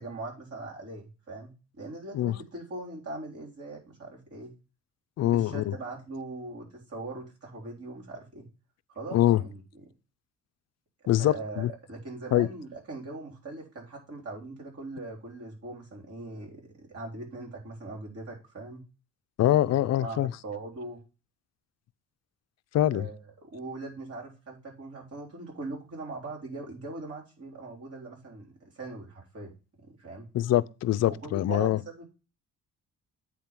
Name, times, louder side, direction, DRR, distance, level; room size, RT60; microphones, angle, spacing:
voice 1, 0.0-4.5 5.2-8.5 8.9-9.8 11.2-18.8 20.0-21.0 22.9-29.5 29.8-30.3 31.1-32.1, right 2 dB, 50° right, 3.9 m, -41 dB
voice 2, 5.2-5.7 9.1-9.4 11.1-11.7 12.3-12.5 19.4-20.3 22.7-23.0 30.3-31.8, left 13 dB, 60° left, 0.5 m, -24 dB
8.7 x 3.6 x 5.9 m
cardioid pair, 90°, 30 cm